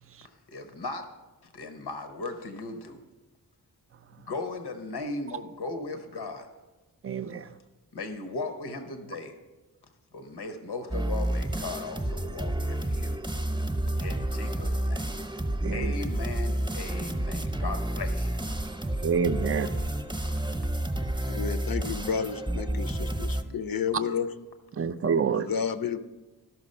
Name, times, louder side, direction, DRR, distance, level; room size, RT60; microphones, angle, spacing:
voice 1, 0.5-1.2 1.5-3.0 4.2-6.5 7.9-9.4 10.1-13.2 14.0-15.2 15.7-18.4 23.3-23.4, left 3 dB, 90° left, 7 dB, 1.0 m, -37 dB
voice 2, 7.0-7.4 15.6-15.9 19.0-19.7 24.8-25.5, right 6 dB, 35° right, 10 dB, 0.4 m, -27 dB
sound 1, 10.9-23.4, right 1 dB, 10° right, 0.8 m, -30 dB
voice 3, 21.2-24.3 25.3-26.0, left 7 dB, 65° left, 11 dB, 0.6 m, -31 dB
13.0 x 5.9 x 5.4 m, 1.2 s
wide cardioid pair, 95°, 38 cm